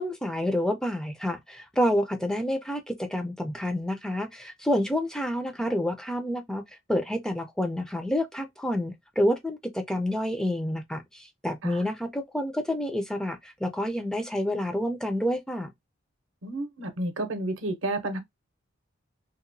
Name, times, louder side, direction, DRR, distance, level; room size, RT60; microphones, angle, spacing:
voice 1, 0.0-15.7, equal, 5° left, 0.3 m, -28 dB
voice 2, 16.4-18.2, right 2 dB, 70° right, 0.7 m, -31 dB
2.8 x 2.1 x 2.5 m
head